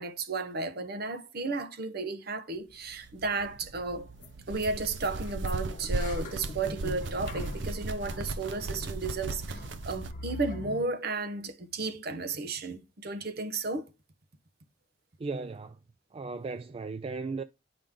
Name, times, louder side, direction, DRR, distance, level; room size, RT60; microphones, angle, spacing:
voice 1, 0.0-4.1 4.5-13.9, right 3 dB, 60° right, 1.0 m, -33 dB
sound 1, 2.9-10.1, right 2 dB, 80° right, 0.7 m, -37 dB
sound 2, 3.8-3.9 4.2-4.3 4.6-4.7 5.0-10.8, left 2 dB, 45° left, 1.1 m, -44 dB
voice 2, 15.2-15.8 16.1-17.4, right 4 dB, 30° right, 0.3 m, -36 dB
8.9 x 5.1 x 3.6 m
head